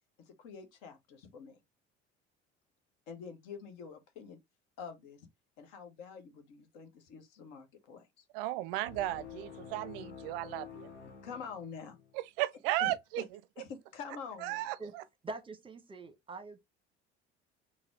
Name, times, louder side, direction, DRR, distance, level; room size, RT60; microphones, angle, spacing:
voice 1, 0.2-1.6 3.1-4.4 4.8-5.3 5.6-8.2 11.2-12.0 12.8-13.3 13.6-14.7, left 6 dB, 60° left, 1.1 m, -46 dB
voice 2, 8.3-10.9 12.1-13.2 14.4-15.0, right 15 dB, 55° right, 0.5 m, -35 dB
sound 1, 8.8-12.2, left 7 dB, 90° left, 0.6 m, -49 dB
voice 3, 15.2-16.6, right 3 dB, 15° right, 1.0 m, -44 dB
4.1 x 2.3 x 4.2 m
figure-of-eight pair, 60°, 34 cm